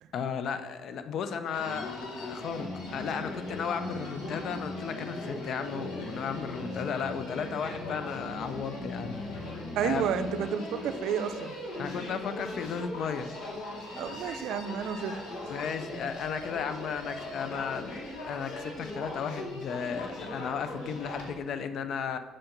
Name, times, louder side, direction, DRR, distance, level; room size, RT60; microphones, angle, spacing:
voice 1, 0.1-9.4 9.8-10.1 11.8-13.3 15.5-22.2, left 7 dB, 65° left, 10 dB, 0.4 m, -35 dB
Human voice, 1.5-21.3, left 1 dB, 85° left, 1.3 m, -39 dB
voice 2, 9.7-11.5 14.0-15.6, right 8 dB, 80° right, 9 dB, 0.4 m, -31 dB
6.3 x 4.4 x 3.9 m, 1.3 s
cardioid pair, 110°, 0 cm